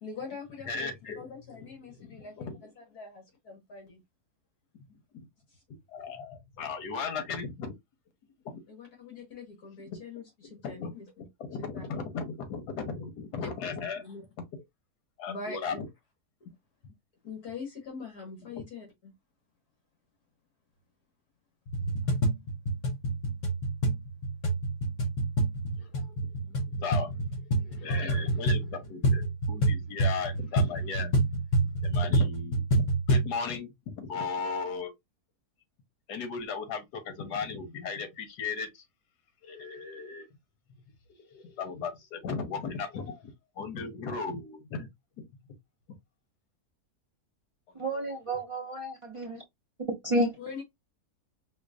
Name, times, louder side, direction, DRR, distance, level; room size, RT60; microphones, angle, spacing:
voice 1, 0.0-2.5 2.8-4.0 8.7-11.3 11.7-11.8 13.4-13.5 14.0-14.2 15.3-15.8 17.2-19.1 50.4-50.6, left 4 dB, 75° left, 2.0 m, -43 dB
voice 2, 0.7-2.7 4.9-5.2 5.9-7.7 8.4-8.6 9.9-10.0 10.6-10.9 11.4-14.0 15.2-15.9 18.5-18.6 25.7-35.0 36.1-38.9 39.4-40.3 41.2-44.9 47.7-47.9, left 5 dB, 90° left, 1.5 m, -37 dB
sound 1, 21.7-33.3, right 1 dB, 45° left, 0.6 m, -27 dB
voice 3, 47.8-49.4 50.0-50.3, right 1 dB, 55° right, 0.3 m, -30 dB
5.1 x 2.2 x 2.5 m
omnidirectional pair, 1.7 m